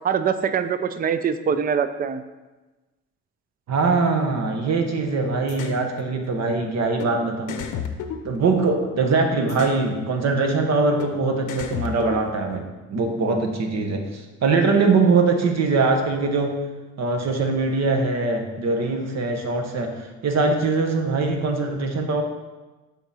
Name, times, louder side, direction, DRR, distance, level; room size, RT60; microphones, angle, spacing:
voice 1, 0.0-2.2, right 7 dB, 30° right, 11 dB, 0.4 m, -23 dB
voice 2, 3.7-7.6 8.2-16.6 17.0-22.2, right 3 dB, 60° right, 4 dB, 1.2 m, -22 dB
sound 1, 5.5-5.8 7.0-7.1 7.5-8.9 9.5-9.8 11.0-11.1 11.5-12.6, left 7 dB, 80° left, 0.7 m, -32 dB
7.0 x 3.9 x 5.6 m, 1.2 s
cardioid pair, 90°, 30 cm